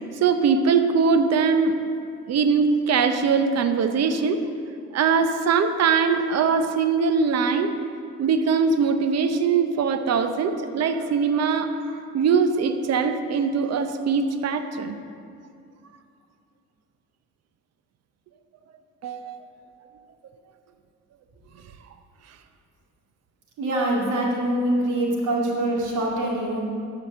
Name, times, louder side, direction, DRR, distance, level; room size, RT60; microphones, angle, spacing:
voice 1, 0.2-1.8 2.3-4.4 4.9-7.7 8.2-15.0 19.0-19.4, right 5 dB, 60° right, 8 dB, 0.7 m, -22 dB
voice 2, 23.6-26.6, right 1 dB, 75° right, -2 dB, 2.4 m, -24 dB
11.5 x 4.9 x 6.8 m, 2.4 s
cardioid pair, 90°, 30 cm